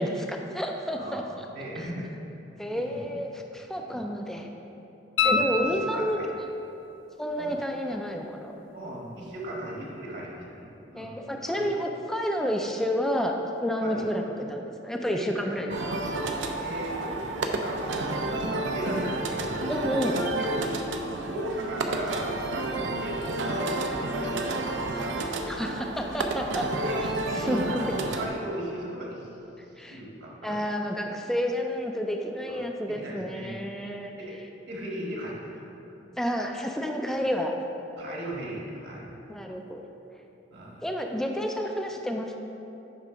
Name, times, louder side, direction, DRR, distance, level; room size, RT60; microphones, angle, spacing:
voice 1, 0.0-1.5 2.6-4.5 5.2-6.2 7.2-8.5 10.9-13.3 13.6-15.7 19.7-20.1 25.5-26.7 27.4-27.6 29.8-30.0 30.4-34.1 36.2-37.5 39.3-39.8 40.8-42.4, equal, ahead, 2 dB, 0.3 m, -30 dB
voice 2, 0.9-2.1 2.7-3.1 3.8-4.0 5.2-6.3 7.3-7.5 8.7-11.7 13.8-14.1 15.0-15.8 16.6-19.8 20.3-20.7 21.2-24.8 26.8-29.3 29.8-30.6 32.5-33.6 34.2-34.4 34.7-35.6 38.0-39.1 40.5-40.8, equal, 60° right, -4 dB, 1.4 m, -38 dB
sound 1, 5.2-6.5 9.3-9.4, left 4 dB, 90° left, 0.5 m, -27 dB
sound 2, 15.7-28.3, right 2 dB, 80° right, 0.6 m, -30 dB
8.9 x 3.3 x 4.9 m, 2.9 s
head